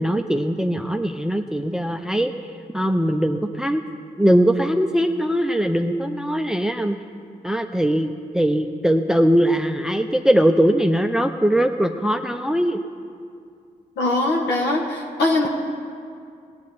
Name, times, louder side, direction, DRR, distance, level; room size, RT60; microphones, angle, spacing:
voice 1, 0.0-2.3 2.7-3.8 4.2-7.0 7.4-12.8, equal, 5° right, 6 dB, 0.6 m, -20 dB
voice 2, 14.0-15.5, left 2 dB, 80° left, 0 dB, 1.4 m, -21 dB
17.5 x 8.6 x 4.2 m, 2.3 s
supercardioid pair, 40°, 18 cm